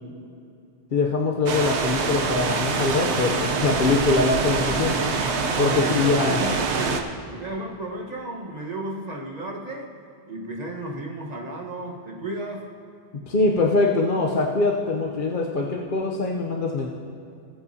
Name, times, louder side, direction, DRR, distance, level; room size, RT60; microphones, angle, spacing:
voice 1, 0.9-5.0 5.6-6.4 13.3-16.9, left 3 dB, 55° left, -1 dB, 0.9 m, -23 dB
sound 1, 1.5-7.0, right 4 dB, 85° right, 1.1 m, -25 dB
voice 2, 5.5-7.0 7.3-9.9 10.3-12.7, right 1 dB, 40° right, -2 dB, 1.4 m, -33 dB
20.0 x 8.3 x 2.8 m, 2.5 s
omnidirectional pair, 1.1 m